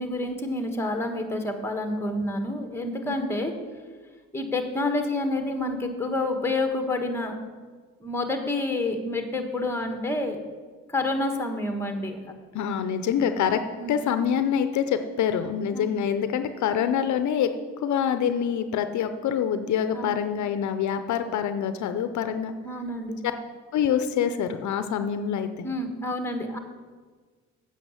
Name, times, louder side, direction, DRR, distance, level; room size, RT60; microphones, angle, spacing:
voice 1, 0.0-3.5 4.3-7.4 8.0-10.4 10.9-12.2 13.8-14.0 15.7-15.9 19.9-20.2 22.6-23.2 25.6-26.6, left 2 dB, 10° left, 5 dB, 1.3 m, -28 dB
voice 2, 12.5-13.6 13.9-17.5 17.8-22.5 23.2-23.3 23.7-25.7, left 8 dB, 70° left, 9 dB, 0.6 m, -25 dB
8.2 x 5.7 x 7.1 m, 1.5 s
cardioid pair, 90°, 30 cm